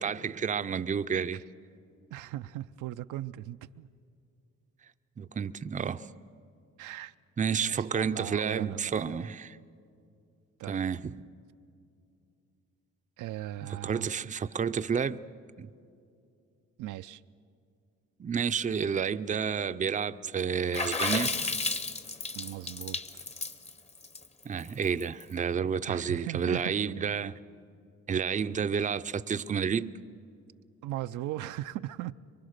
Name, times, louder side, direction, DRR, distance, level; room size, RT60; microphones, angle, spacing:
voice 1, 0.0-1.4 5.2-6.1 7.4-9.6 10.7-11.1 13.8-15.2 15.6-15.7 18.2-21.3 24.4-27.3 28.1-29.9, right 6 dB, 25° right, 0.5 m, -30 dB
voice 2, 2.1-3.9 6.8-7.1 7.6-9.3 10.6-10.8 13.2-14.1 16.8-17.2 22.3-23.2 25.9-26.8 28.7-28.9 30.8-32.1, right 14 dB, 80° right, 0.5 m, -38 dB
Water / Splash splatter, 20.7-25.2, left 3 dB, 20° left, 0.8 m, -32 dB
24.0 x 23.5 x 6.6 m
cardioid pair, 90°, 30 cm